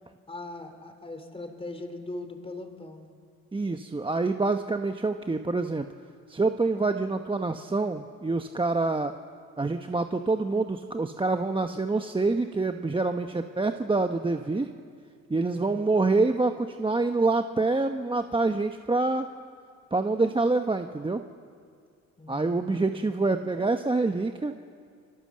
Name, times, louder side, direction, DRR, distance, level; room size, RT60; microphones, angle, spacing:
voice 1, 0.3-3.1 15.5-16.0 22.2-23.1, left 2 dB, 20° left, 7 dB, 3.6 m, -40 dB
voice 2, 3.5-5.9 6.3-9.1 9.6-14.7 15.3-19.3 19.9-21.2 22.3-24.5, right 3 dB, 15° right, 6 dB, 1.0 m, -26 dB
29.0 x 23.5 x 7.6 m, 2.2 s
cardioid pair, 90°, 30 cm